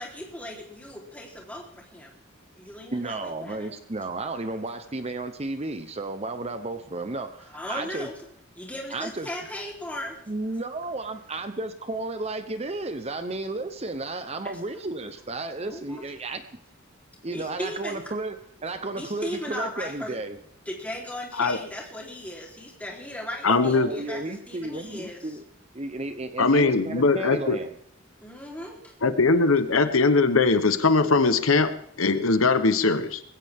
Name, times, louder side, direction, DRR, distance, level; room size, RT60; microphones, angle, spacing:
voice 1, 0.0-2.1 2.5-3.7 7.5-8.1 8.6-10.2 15.6-16.1 17.3-18.1 19.0-20.2 20.7-25.2 28.2-28.8, left 1 dB, 5° left, -2 dB, 3.8 m, -37 dB
voice 2, 2.9-8.1 8.9-9.3 10.3-16.4 17.2-20.4 23.5-25.4 25.7-27.8, right 2 dB, 30° right, 9 dB, 0.9 m, -33 dB
voice 3, 23.4-23.9 26.4-27.6 29.0-31.7 32.0-33.2, left 3 dB, 80° left, 10 dB, 1.1 m, -21 dB
21.0 x 16.5 x 3.7 m, 0.68 s
head